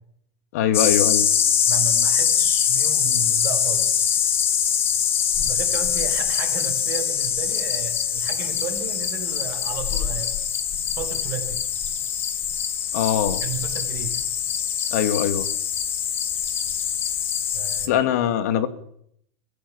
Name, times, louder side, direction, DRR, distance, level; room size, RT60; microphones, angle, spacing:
voice 1, 0.5-1.3 12.9-13.4 14.9-15.5 17.9-18.7, left 10 dB, 70° left, 12 dB, 2.6 m, -22 dB
sound 1, 0.7-17.9, left 8 dB, 25° left, 1.9 m, -23 dB
voice 2, 1.7-4.3 5.4-10.4 11.0-11.6 13.4-14.2 17.5-18.0, right 8 dB, 40° right, 2 dB, 6.4 m, -34 dB
23.0 x 17.0 x 7.3 m, 0.68 s
supercardioid pair, 165°, 9 cm